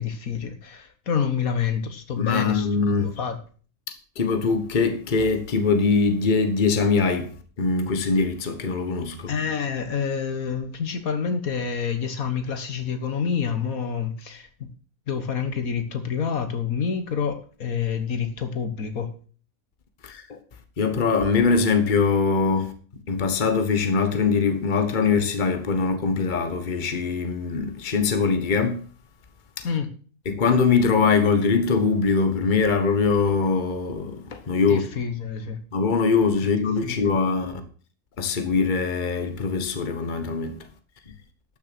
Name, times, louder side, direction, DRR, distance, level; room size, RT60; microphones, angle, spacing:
voice 1, 0.0-3.4 9.3-14.7 15.1-19.1 29.6-29.9 34.7-35.6 36.8-37.1, left 6 dB, 70° left, 1.8 m, -28 dB
voice 2, 2.1-3.1 3.9-7.3 7.6-9.3 20.0-20.4 20.8-22.7 23.1-28.8 29.6-29.7 30.2-34.8 35.7-37.6 38.2-40.6 41.1-41.2, left 4 dB, 35° left, 1.3 m, -22 dB
12.5 x 6.6 x 6.1 m
omnidirectional pair, 1.5 m